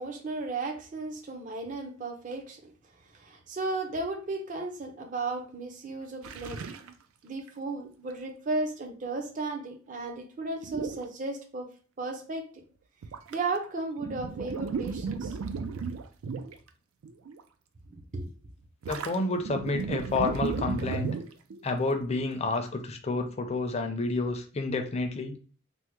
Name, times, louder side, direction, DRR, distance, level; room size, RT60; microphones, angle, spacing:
voice 1, 0.0-2.6 3.1-6.6 7.2-11.7 12.0-12.6 13.3-15.4 18.1-18.3, right 3 dB, 40° right, 3 dB, 0.5 m, -34 dB
sound 1, 6.2-6.9 7.5-7.6 10.6-11.0 13.0-13.7 14.0-16.7 17.0-17.4 18.8-21.6, right 5 dB, 90° right, 0.4 m, -34 dB
voice 2, 18.9-21.1 21.6-25.4, left 3 dB, 30° left, 5 dB, 0.4 m, -29 dB
3.4 x 2.1 x 3.0 m, 0.40 s
head